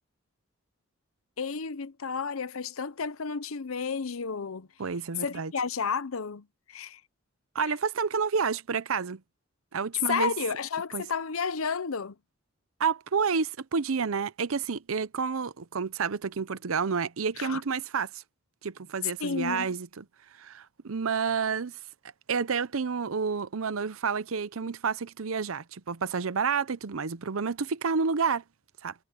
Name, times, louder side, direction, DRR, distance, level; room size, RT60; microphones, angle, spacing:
voice 1, 1.4-4.7 5.2-7.0 10.1-12.1 17.4-17.6 19.2-19.7, left 5 dB, 85° left, 0.8 m, -32 dB
voice 2, 4.8-5.5 7.5-9.2 9.7-10.3 10.9-11.0 12.8-18.2 18.6-20.1 20.4-21.8 22.3-28.4 28.8-28.9, right 5 dB, 85° right, 0.7 m, -29 dB
head